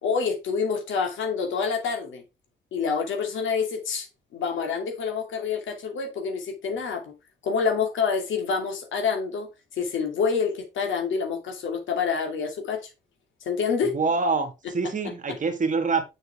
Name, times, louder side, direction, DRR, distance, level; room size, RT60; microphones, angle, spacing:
voice 1, 0.0-2.2 2.7-4.1 4.3-7.1 7.4-9.5 9.7-12.8 13.5-13.9, left 5 dB, 75° left, 2.5 m, -27 dB
voice 2, 13.8-16.0, right 4 dB, 40° right, 2.0 m, -25 dB
6.8 x 6.3 x 3.5 m
cardioid pair, 90°, 20 cm